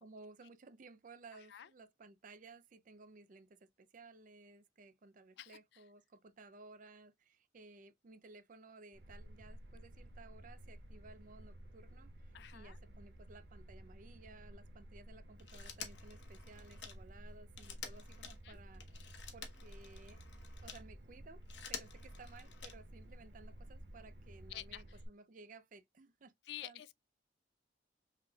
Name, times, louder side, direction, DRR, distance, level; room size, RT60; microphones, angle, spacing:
voice 1, 0.0-20.2 20.6-21.4 21.7-26.3 26.6-26.8, right 3 dB, 45° right, 0.5 m, -58 dB
sound 1, 8.9-25.1, right 1 dB, 70° right, 0.8 m, -53 dB
voice 2, 12.3-12.8 18.4-18.6 24.5-25.0 26.5-26.9, left 13 dB, 65° left, 0.3 m, -48 dB
Telephone, 15.4-20.9 21.3-23.0 24.3-24.4, left 7 dB, 80° left, 1.0 m, -50 dB
5.7 x 3.2 x 2.3 m
head